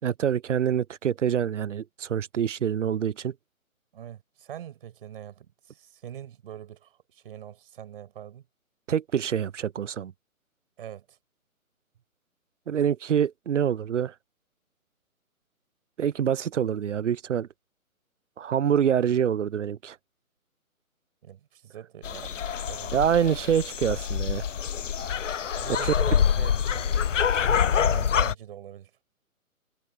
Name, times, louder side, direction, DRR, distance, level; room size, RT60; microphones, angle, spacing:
voice 1, 0.0-3.3 8.9-10.1 12.7-14.1 16.0-17.5 18.4-20.0 22.9-24.4, right 8 dB, 55° right, 0.6 m, -26 dB
voice 2, 3.9-8.5 10.8-11.2 21.2-22.4 22.7-23.0 25.6-27.0 27.9-28.9, right 10 dB, 40° right, 5.6 m, -43 dB
sound 1, 22.0-28.3, left 8 dB, 55° left, 0.9 m, -26 dB
figure-of-eight pair, 150°, 43 cm